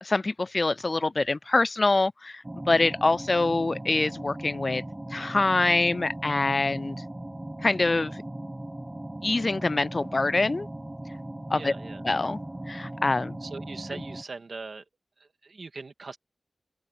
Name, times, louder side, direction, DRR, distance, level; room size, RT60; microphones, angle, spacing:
voice 1, 0.0-4.8 5.1-7.0 7.6-8.2 9.2-10.7 11.5-11.7 12.0-12.4 12.7-13.4, left 3 dB, 50° left, 0.4 m, -25 dB
sound 1, 2.4-14.2, right 1 dB, 20° right, 1.3 m, -38 dB
Wind instrument woodwind instrument, 9.6-14.7, left 1 dB, 20° left, 7.2 m, -63 dB
voice 2, 11.5-12.0 13.4-14.8 15.2-16.2, right 4 dB, 70° right, 2.4 m, -41 dB
open air
cardioid pair, 50°, 0 cm